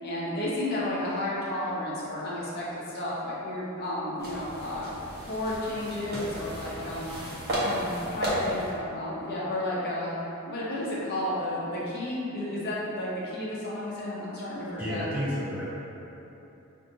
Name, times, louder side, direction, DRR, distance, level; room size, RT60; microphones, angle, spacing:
voice 1, 0.0-5.0 5.2-7.1 7.6-10.2 10.5-15.1, left 1 dB, 45° left, -7 dB, 0.7 m, -32 dB
sound 1, 4.2-8.7, equal, 50° right, 0.9 m, -33 dB
voice 2, 14.8-15.7, equal, 10° right, -11 dB, 1.1 m, -31 dB
5.4 x 2.6 x 2.7 m, 3.0 s
head